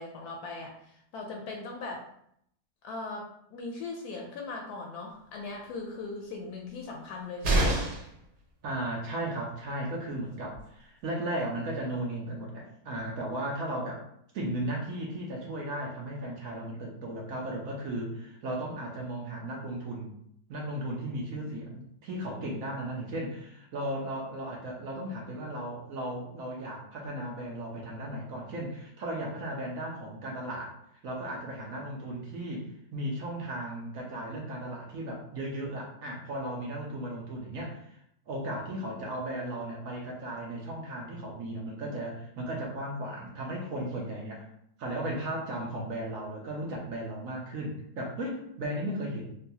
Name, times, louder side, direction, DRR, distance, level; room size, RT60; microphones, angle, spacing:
voice 1, 0.0-2.1 2.8-7.9, left 3 dB, 75° left, 0 dB, 1.0 m, -39 dB
sound 1, 7.4-8.2 10.1-10.2 10.5-10.6, right 1 dB, 85° right, 1.4 m, -26 dB
voice 2, 8.6-14.0 14.3-20.1 20.5-30.7 31.0-38.0 38.3-44.5 44.8-49.3, right 1 dB, 65° right, -2 dB, 1.0 m, -36 dB
3.8 x 2.2 x 2.7 m, 0.71 s
omnidirectional pair, 1.7 m